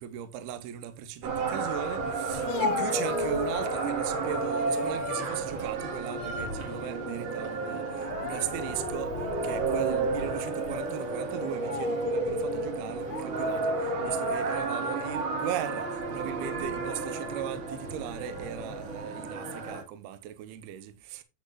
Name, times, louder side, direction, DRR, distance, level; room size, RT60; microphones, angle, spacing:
voice 1, 0.0-9.1 9.4-21.2, right 11 dB, 75° right, 2.6 m, -38 dB
sound 1, 1.2-19.8, right 3 dB, 55° right, 1.9 m, -32 dB
Speech, 2.3-3.9 4.4-5.0 5.4-6.6 6.9-7.1 7.9-8.9 9.5-9.6 10.4-10.6 11.4-12.1 13.0-13.7, left 7 dB, 75° left, 2.5 m, -37 dB
10.5 x 7.9 x 2.5 m
omnidirectional pair, 5.3 m